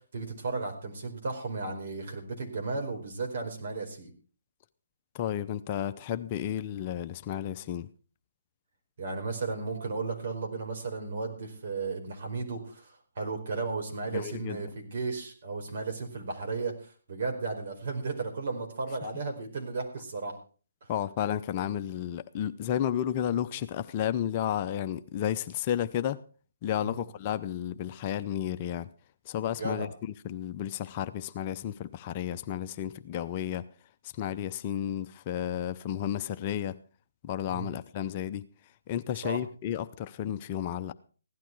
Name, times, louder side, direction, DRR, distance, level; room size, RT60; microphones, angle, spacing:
voice 1, 0.0-4.1 9.0-20.3 26.8-27.0 29.5-29.9 37.5-37.7 39.2-39.4, right 4 dB, 55° right, 4.7 m, -34 dB
voice 2, 5.1-7.9 14.1-14.6 20.9-26.2 26.6-28.9 29.3-33.7 34.0-36.8 37.2-38.4 38.9-40.9, left 10 dB, 30° left, 0.6 m, -32 dB
16.0 x 11.5 x 4.7 m
hypercardioid pair, 145°, 0 cm